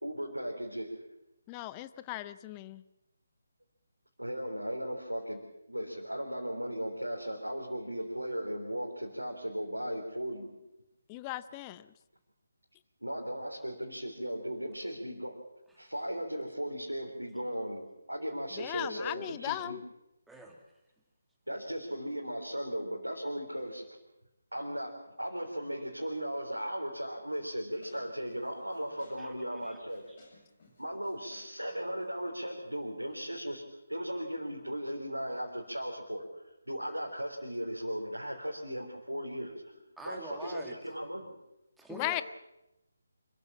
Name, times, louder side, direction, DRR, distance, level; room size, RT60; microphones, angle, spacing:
voice 1, 0.0-1.0 4.2-5.4 5.7-10.6 13.0-15.4 15.8-19.8 21.5-23.9 24.5-30.1 30.8-33.6 33.9-36.3 36.7-41.4, equal, 85° right, -2 dB, 3.7 m, -37 dB
voice 2, 1.5-2.8 11.1-11.9 18.6-19.8 41.9-42.2, left 16 dB, 20° left, 15 dB, 0.7 m, -37 dB
voice 3, 20.3-20.6 29.2-29.8 30.1-30.2 31.7-31.8 40.0-40.8 41.8-42.2, right 2 dB, 5° right, 1 dB, 2.4 m, -47 dB
sound 1, 27.7-33.1, left 2 dB, 45° left, 7.6 m, -61 dB
26.0 x 14.5 x 7.4 m, 0.93 s
figure-of-eight pair, 150°, 0 cm